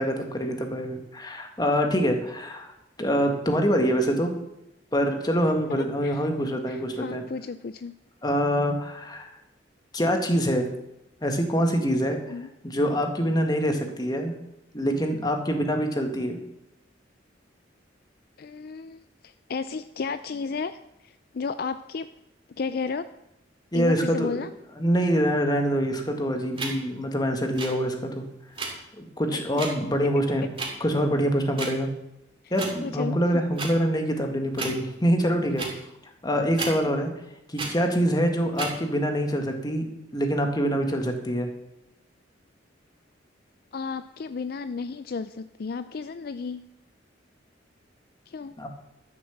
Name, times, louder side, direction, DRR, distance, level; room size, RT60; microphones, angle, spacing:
voice 1, 0.0-2.7 3.0-4.3 4.9-7.3 8.2-9.3 9.9-10.7 11.2-12.2 12.6-14.4 14.7-16.4 23.7-24.3 24.8-28.2 28.7-30.5 30.8-31.9 32.5-35.7 36.2-37.1 37.5-39.9 40.1-41.5 48.6-48.7, equal, 20° left, 4 dB, 1.7 m, -25 dB
voice 2, 5.7-6.3 6.7-7.9 12.3-12.5 18.4-22.1 22.5-23.1 23.7-24.5 29.3-29.4 30.6-30.8 32.8-33.4 36.8-37.0 43.7-46.6 48.3-48.5, left 5 dB, 55° left, 12 dB, 0.4 m, -33 dB
sound 1, 26.6-26.7 27.5-27.7 28.5-28.7 29.6-29.7 30.5-30.7 31.6-31.7 32.5-32.7 33.5-33.7 34.5-34.8 35.6-35.7 36.6-36.7 37.5-37.7 38.5-38.7, right 3 dB, 30° right, 2.6 m, -31 dB
12.5 x 7.4 x 7.2 m, 0.87 s
head